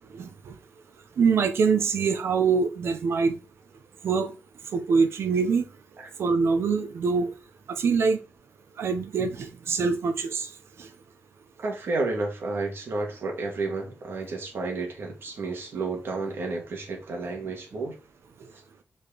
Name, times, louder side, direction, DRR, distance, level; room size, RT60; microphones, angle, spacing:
voice 1, 0.2-0.5 1.2-3.3 4.0-4.3 4.7-5.6 6.2-7.3 7.7-8.2 8.8-10.5 10.8-10.9, right 5 dB, 85° right, 1.0 m, -24 dB
voice 2, 11.6-17.9 18.5-18.6, right 3 dB, 60° right, 2.5 m, -31 dB
5.3 x 4.5 x 5.2 m
wide cardioid pair, 150°, 4 cm